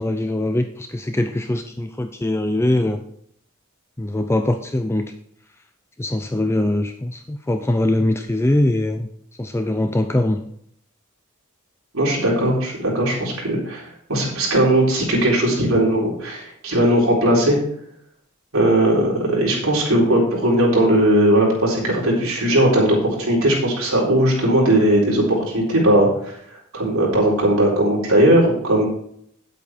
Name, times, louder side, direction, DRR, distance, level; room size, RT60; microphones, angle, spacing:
voice 1, 0.0-3.0 4.0-5.0 6.0-9.1 9.4-10.4, left 1 dB, 10° left, 6 dB, 0.5 m, -22 dB
voice 2, 11.9-13.8 14.1-17.6 18.5-26.1 26.7-28.9, right 1 dB, 75° right, -4 dB, 4.0 m, -18 dB
9.5 x 8.3 x 4.4 m, 0.69 s
head